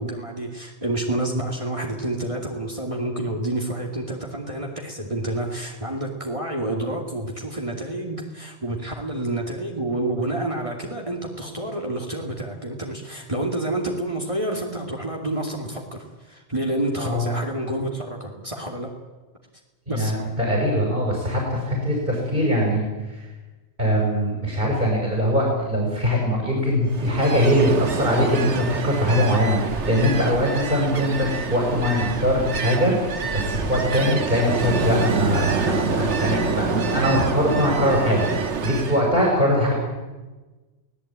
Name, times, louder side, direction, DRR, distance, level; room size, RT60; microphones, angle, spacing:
voice 1, 0.0-18.9 19.9-20.1, right 1 dB, 30° right, 0 dB, 2.7 m, -28 dB
voice 2, 19.9-23.3 23.8-38.3 38.6-39.7, equal, 50° right, -2 dB, 6.7 m, -22 dB
Ocean, 26.9-39.1, right 5 dB, 80° right, 1.6 m, -27 dB
24.0 x 18.0 x 9.0 m, 1.2 s
omnidirectional pair, 1.2 m